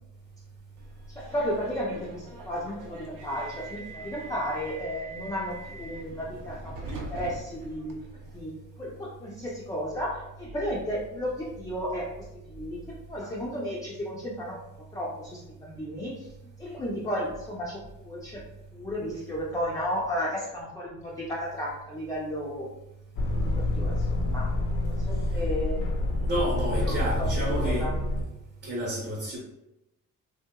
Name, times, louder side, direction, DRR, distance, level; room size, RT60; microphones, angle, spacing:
Subway metro underground, 0.8-8.4, right 2 dB, 80° right, 0.6 m, -43 dB
voice 1, 1.1-8.0 8.3-8.5 8.8-14.6 14.9-16.3 16.6-18.4 18.7-22.7 23.3-24.5 24.8-25.9 26.8-27.3 27.6-27.9, equal, 10° left, -5 dB, 0.3 m, -34 dB
sound 1, 23.2-28.2, left 1 dB, 70° left, 0.5 m, -27 dB
voice 2, 26.3-27.9 28.6-29.4, equal, 35° right, -7 dB, 0.8 m, -30 dB
3.4 x 2.8 x 2.2 m, 0.90 s
wide cardioid pair, 180°, 32 cm